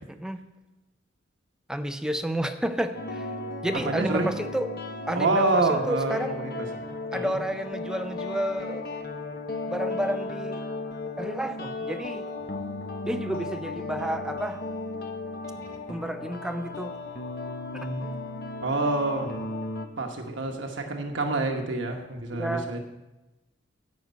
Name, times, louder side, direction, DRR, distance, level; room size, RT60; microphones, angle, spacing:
voice 1, 0.1-0.4 1.7-3.3 3.6-4.7 5.1-6.4 7.1-8.9 9.7-10.7 11.2-12.3 13.0-14.6 15.9-17.0 17.7-18.1 22.3-22.7, right 1 dB, 5° right, 8 dB, 0.5 m, -31 dB
sound 1, 2.9-19.9, left 2 dB, 55° left, 1.0 m, -35 dB
voice 2, 3.7-4.3 5.1-6.5 7.1-7.4 18.6-19.3 20.0-22.8, right 3 dB, 85° right, 3 dB, 1.1 m, -27 dB
10.5 x 5.4 x 8.1 m, 1.0 s
head